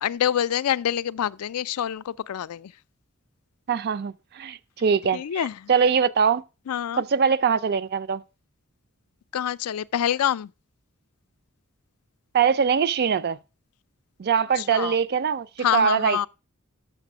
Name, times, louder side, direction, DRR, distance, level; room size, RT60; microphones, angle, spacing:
voice 1, 0.0-2.7 5.1-5.7 6.7-7.0 9.3-10.5 14.6-14.9 15.6-16.3, left 10 dB, 80° left, 0.4 m, -26 dB
voice 2, 3.7-5.4 5.7-6.4 7.0-8.2 12.3-13.4 14.2-15.5 15.7-16.3, right 6 dB, 45° right, 0.4 m, -22 dB
6.7 x 6.3 x 6.1 m
head